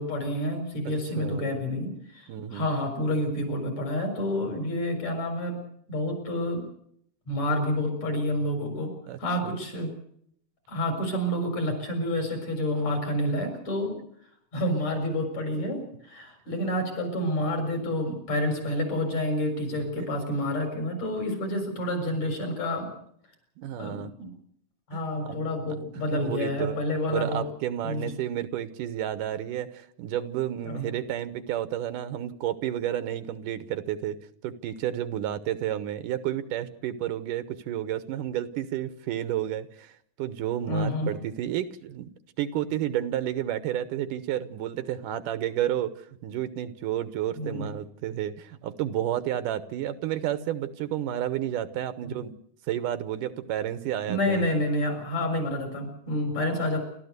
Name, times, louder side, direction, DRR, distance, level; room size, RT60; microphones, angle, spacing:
voice 1, 0.0-5.6 5.9-6.6 7.3-8.9 9.2-9.9 10.7-14.0 14.5-22.9 23.8-24.3 24.9-27.4 27.8-28.1 30.6-30.9 40.7-41.1 47.4-47.6 54.1-56.8, left 1 dB, 55° left, 4 dB, 7.6 m, -29 dB
voice 2, 1.2-1.6 2.3-2.7 9.1-9.5 20.0-20.1 23.6-24.1 24.9-25.4 26.1-26.8 27.1-39.9 40.2-42.1 42.4-52.4 52.7-54.5, right 11 dB, 80° right, 12 dB, 2.6 m, -31 dB
29.0 x 13.5 x 8.1 m, 0.70 s
omnidirectional pair, 3.8 m